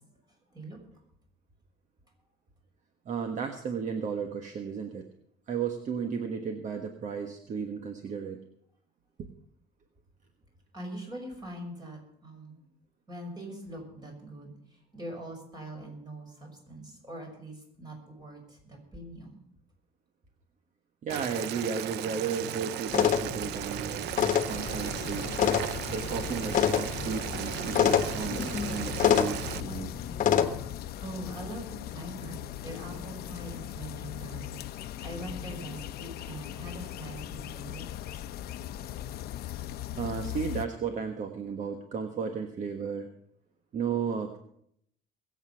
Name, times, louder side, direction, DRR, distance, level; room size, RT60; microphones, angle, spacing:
voice 1, 3.0-5.1 5.5-8.4 9.2-9.3 21.0-24.1 24.5-25.3 25.9-29.9 39.9-43.1 43.7-44.4, right 6 dB, 45° right, 6 dB, 1.4 m, -34 dB
voice 2, 10.7-12.6 13.1-19.4 31.0-38.1, right 1 dB, 25° right, 1 dB, 6.2 m, -43 dB
Boiling, 21.1-29.6, right 13 dB, 75° right, 0.6 m, -36 dB
sound 1, 22.9-30.5, left 8 dB, 50° left, 1.3 m, -28 dB
sound 2, 24.5-40.7, left 12 dB, 65° left, 0.8 m, -39 dB
22.0 x 8.3 x 5.8 m, 0.70 s
cardioid pair, 125°, 17 cm